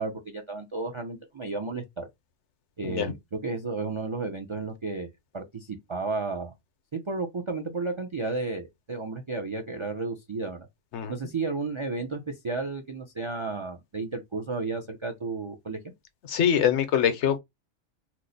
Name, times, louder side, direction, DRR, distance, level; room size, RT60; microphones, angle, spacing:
voice 1, 0.0-2.1 2.8-5.1 5.3-6.5 6.9-10.7 11.1-15.9, right 3 dB, 50° right, 0.3 m, -33 dB
voice 2, 16.3-17.4, left 8 dB, 75° left, 0.9 m, -23 dB
3.0 x 2.1 x 3.8 m
omnidirectional pair, 1.3 m